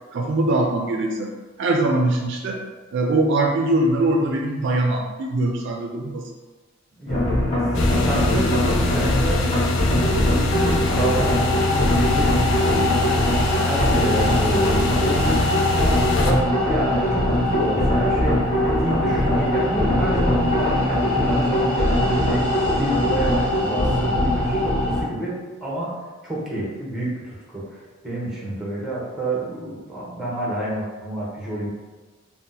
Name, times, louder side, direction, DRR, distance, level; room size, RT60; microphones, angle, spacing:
voice 1, 0.1-1.3 1.6-2.6 2.9-6.3, right 2 dB, 60° right, 1 dB, 0.4 m, -22 dB
voice 2, 7.0-9.4 9.8-18.4 18.7-22.5 22.8-25.9 26.2-31.7, right 1 dB, ahead, -6 dB, 0.8 m, -29 dB
sound 1, 7.1-25.0, left 1 dB, 30° left, 0.9 m, -21 dB
sound 2, 7.7-16.3, left 4 dB, 65° left, 0.4 m, -26 dB
2.8 x 2.0 x 3.7 m, 1.3 s
head